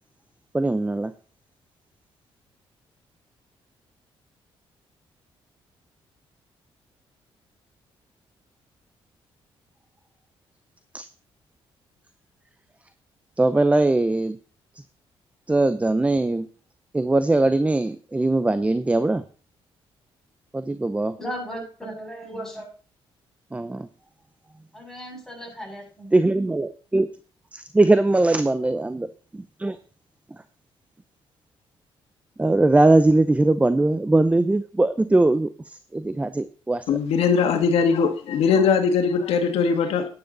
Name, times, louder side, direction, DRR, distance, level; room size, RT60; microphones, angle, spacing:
voice 1, 0.5-1.1 10.9-11.1 13.4-14.4 15.5-16.5 16.9-19.2 20.5-21.2 23.5-23.9 26.1-27.1 27.5-29.1 29.3-29.8 30.3-30.4 32.4-37.0, right 2 dB, 15° right, 12 dB, 0.7 m, -21 dB
voice 2, 21.2-22.7 24.7-26.2, equal, 5° left, -1 dB, 7.0 m, -36 dB
voice 3, 36.9-40.1, left 6 dB, 85° left, 6 dB, 1.8 m, -20 dB
12.0 x 9.8 x 4.0 m, 0.39 s
cardioid pair, 90°, 10 cm